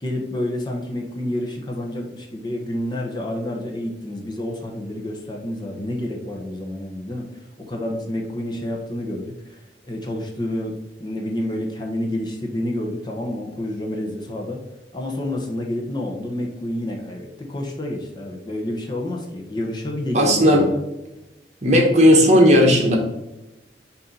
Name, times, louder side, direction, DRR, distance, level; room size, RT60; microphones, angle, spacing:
voice 1, 0.0-7.3 7.7-14.6 14.9-20.8, left 1 dB, 25° left, 0 dB, 0.9 m, -29 dB
voice 2, 20.1-20.7 21.6-23.0, equal, 40° right, 1 dB, 1.2 m, -14 dB
6.4 x 2.8 x 5.4 m, 0.97 s
head